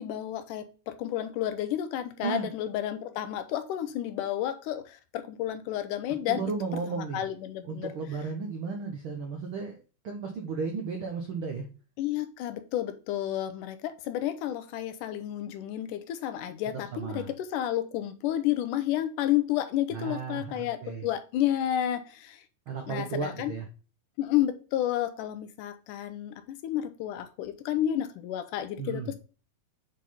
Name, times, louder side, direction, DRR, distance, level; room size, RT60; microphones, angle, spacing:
voice 1, 0.0-6.4 6.9-7.9 12.0-22.4 22.9-23.5 24.2-29.2, left 12 dB, 80° left, 10 dB, 2.2 m, -31 dB
voice 2, 6.3-7.2 7.6-11.6 16.9-17.3 19.9-21.0 22.7-23.7 28.8-29.1, right 5 dB, 75° right, 3 dB, 1.2 m, -34 dB
7.9 x 3.9 x 4.2 m, 0.35 s
omnidirectional pair, 3.7 m